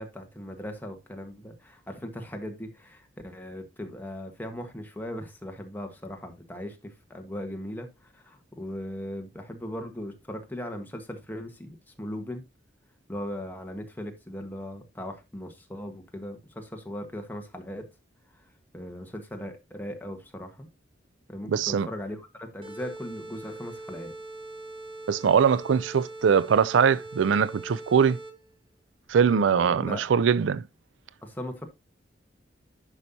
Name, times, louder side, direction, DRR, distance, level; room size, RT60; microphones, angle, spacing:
voice 1, 0.0-12.4 13.1-17.9 18.7-20.7 21.3-24.1 29.3-30.0 31.2-31.7, left 1 dB, 10° left, 1.4 m, -38 dB
voice 2, 21.5-21.9 25.1-28.2 29.1-30.6, right 7 dB, 85° right, 0.4 m, -22 dB
sound 1, 22.6-28.6, right 2 dB, 30° right, 1.2 m, -42 dB
10.5 x 5.5 x 2.8 m
head